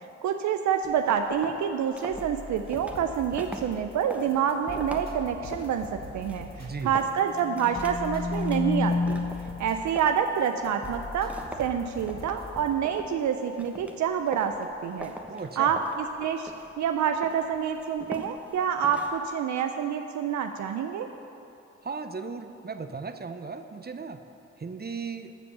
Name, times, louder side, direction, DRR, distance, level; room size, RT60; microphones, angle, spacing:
voice 1, 0.2-9.2 9.6-11.3 11.6-15.1 15.6-15.8 16.2-16.5 16.8-21.1, right 8 dB, 75° right, 6 dB, 0.5 m, -27 dB
sound 1, 0.8-19.3, right 1 dB, 5° right, 1.1 m, -44 dB
sound 2, 2.1-12.7, left 1 dB, 30° left, 2.4 m, -43 dB
voice 2, 6.6-6.9 15.3-15.7 21.8-24.2 24.6-25.3, right 5 dB, 35° right, 8 dB, 0.8 m, -36 dB
sound 3, 7.4-10.0, left 3 dB, 10° left, 0.6 m, -30 dB
14.0 x 5.2 x 6.8 m, 2.9 s
supercardioid pair, 40°, 30 cm